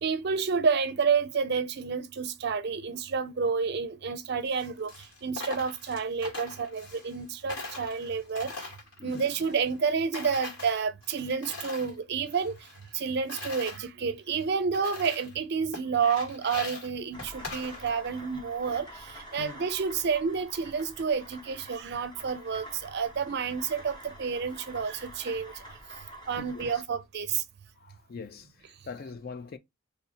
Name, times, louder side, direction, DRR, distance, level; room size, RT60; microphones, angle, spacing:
voice 1, 0.0-4.9 5.2-8.5 9.0-12.5 12.9-18.9 19.3-25.5 26.3-27.4, right 5 dB, 50° right, 0.4 m, -29 dB
Coin (dropping), 4.4-7.2 7.5-9.9 10.1-11.9 12.3-13.8 14.3-14.4 14.7-15.4 15.7-18.1, left 3 dB, 65° left, 1.7 m, -42 dB
sound 1, 17.1-26.8, equal, 20° left, 1.2 m, -47 dB
voice 2, 26.4-26.8 27.8-29.6, left 4 dB, 45° left, 0.3 m, -43 dB
2.7 x 2.5 x 4.1 m
head